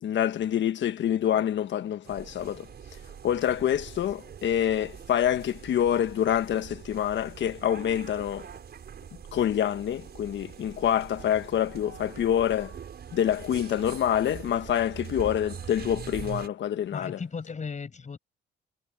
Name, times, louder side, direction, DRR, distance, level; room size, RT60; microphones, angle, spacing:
voice 1, 0.0-2.7 3.2-8.5 9.3-12.7 13.1-17.2, left 10 dB, 65° left, 1.4 m, -26 dB
sound 1, 2.0-16.5, right 7 dB, 55° right, 6.7 m, -43 dB
voice 2, 16.9-18.2, left 5 dB, 35° left, 7.0 m, -36 dB
cardioid pair, 90°, 20 cm